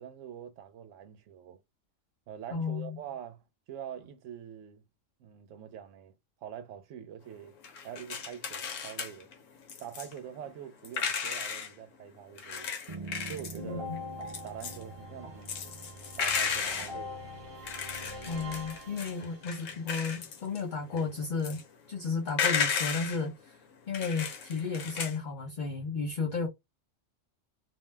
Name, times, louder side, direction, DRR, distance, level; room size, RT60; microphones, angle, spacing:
voice 1, 0.0-1.6 2.3-4.8 5.2-6.1 6.4-7.5 7.8-9.3 9.8-12.7 13.3-13.9 14.4-15.8 16.2-17.3, right 9 dB, 70° right, 1.0 m, -44 dB
voice 2, 2.5-3.0 13.6-14.0 18.3-21.6 21.9-23.6 23.9-26.5, left 4 dB, 50° left, 0.6 m, -33 dB
sound 1, 7.6-11.7 12.3-25.2, left 6 dB, 70° left, 1.1 m, -35 dB
sound 2, 12.9-19.7, equal, 40° right, 0.5 m, -43 dB
2.6 x 2.1 x 3.2 m
omnidirectional pair, 1.4 m